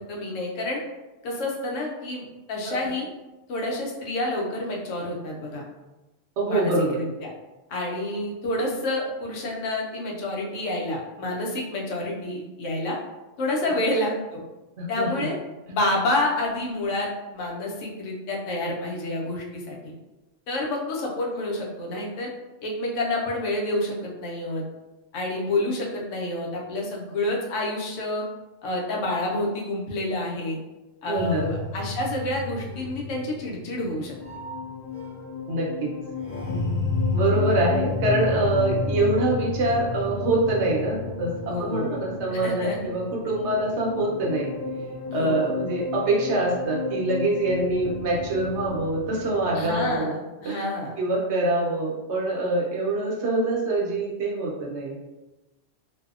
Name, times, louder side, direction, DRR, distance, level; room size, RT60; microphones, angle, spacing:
voice 1, 0.1-0.8 1.2-3.1 3.5-5.6 6.5-7.3 7.7-13.0 13.4-14.4 14.9-15.3 15.7-19.8 20.5-22.3 22.6-24.6 25.1-28.2 28.6-30.6 31.0-34.1 41.5-42.0 42.3-42.8 45.1-45.5 49.5-50.1 50.4-50.9, left 1 dB, 85° left, -1 dB, 1.0 m, -28 dB
voice 2, 6.4-7.0 14.8-15.3 31.1-31.5 35.5-35.9 37.1-44.5 45.1-50.1 50.4-50.6 51.0-55.0, right 2 dB, 70° right, -2 dB, 0.9 m, -25 dB
sound 1, 31.1-50.0, left 4 dB, 45° left, 0.9 m, -31 dB
2.6 x 2.0 x 2.3 m, 1.1 s
omnidirectional pair, 1.3 m